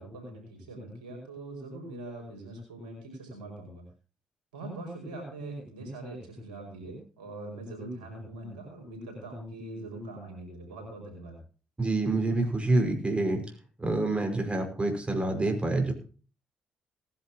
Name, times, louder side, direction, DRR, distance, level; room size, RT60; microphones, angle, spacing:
voice 1, 0.0-3.8 4.5-11.4, right 1 dB, 90° right, 1 dB, 5.5 m, -42 dB
voice 2, 11.8-13.4 13.8-15.9, right 2 dB, 25° right, 3 dB, 5.5 m, -27 dB
19.0 x 11.5 x 2.9 m, 0.37 s
hypercardioid pair, 45°, 4 cm